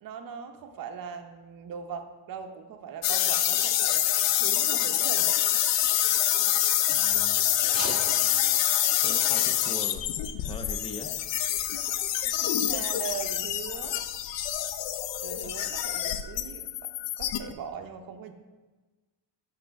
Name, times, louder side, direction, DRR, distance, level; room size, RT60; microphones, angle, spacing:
voice 1, 0.0-4.1 4.3-5.4 12.2-14.0 15.2-16.9 17.2-18.3, right 7 dB, 55° right, 6 dB, 0.7 m, -40 dB
sound 1, 3.0-17.5, left 11 dB, 85° left, 0.5 m, -26 dB
voice 2, 6.9-7.5 9.0-10.1 10.4-11.1, left 2 dB, 15° left, 6 dB, 0.3 m, -41 dB
sound 2, 7.5-12.5, right 2 dB, 35° right, 2.1 m, -45 dB
7.7 x 3.3 x 5.6 m, 1.2 s
cardioid pair, 155°, 42 cm